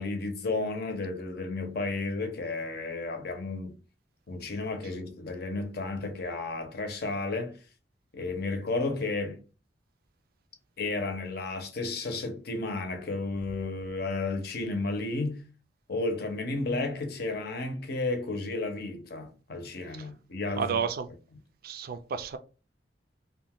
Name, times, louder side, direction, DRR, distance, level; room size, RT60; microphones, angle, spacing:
voice 1, 0.0-3.7 4.3-7.5 8.1-9.4 10.8-15.4 15.9-20.8, left 3 dB, 60° left, 0.7 m, -32 dB
voice 2, 20.6-21.1 21.6-22.4, right 6 dB, 55° right, 0.4 m, -31 dB
2.6 x 2.2 x 3.4 m
head